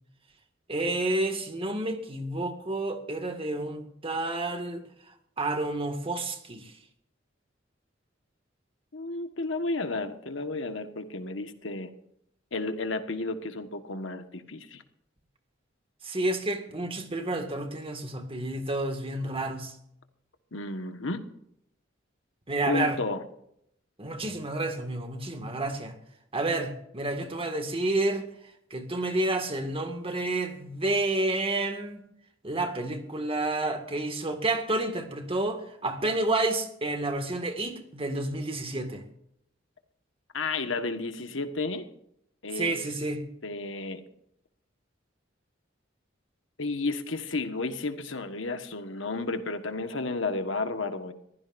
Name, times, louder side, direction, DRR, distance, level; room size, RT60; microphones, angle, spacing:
voice 1, 0.7-4.8 5.4-6.7 16.0-19.7 22.5-23.0 24.0-25.9 26.3-28.3 28.7-32.0 32.4-39.1 42.6-43.2, right 2 dB, 30° right, 6 dB, 2.0 m, -30 dB
voice 2, 8.9-11.9 12.5-14.8 20.5-21.2 22.6-23.2 40.3-41.9 42.4-42.8 43.4-44.0 46.6-51.1, left 3 dB, 80° left, 8 dB, 1.5 m, -32 dB
22.5 x 15.5 x 2.6 m, 0.73 s
head